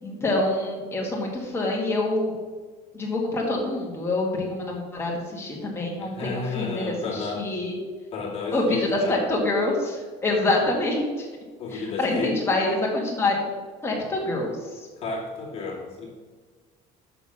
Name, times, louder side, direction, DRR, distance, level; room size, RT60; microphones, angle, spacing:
voice 1, 0.0-2.3 2.9-7.8 8.5-11.3 11.7-13.4 13.8-14.6, left 2 dB, 15° left, -2 dB, 1.9 m, -26 dB
voice 2, 6.0-7.5 8.1-9.2 11.6-12.4 15.0-16.1, left 4 dB, 35° left, -5 dB, 2.3 m, -32 dB
6.8 x 6.0 x 6.5 m, 1.4 s
cardioid pair, 160°, 18 cm